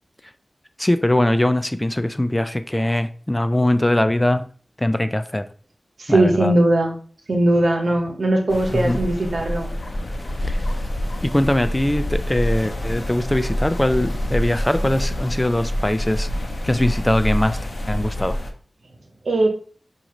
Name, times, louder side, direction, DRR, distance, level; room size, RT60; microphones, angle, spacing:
voice 1, 0.8-4.5 4.8-5.4 6.1-6.5 8.7-9.0 10.4-10.6 11.2-16.3 16.6-17.6 17.9-18.4, left 1 dB, 20° left, 11 dB, 0.4 m, -21 dB
voice 2, 6.0-7.0 7.3-9.7 19.2-19.5, right 1 dB, 85° right, 2 dB, 1.0 m, -19 dB
sound 1, 8.5-18.5, equal, 55° left, 0.7 m, -26 dB
5.9 x 2.6 x 3.0 m, 0.43 s
cardioid pair, 45°, 0 cm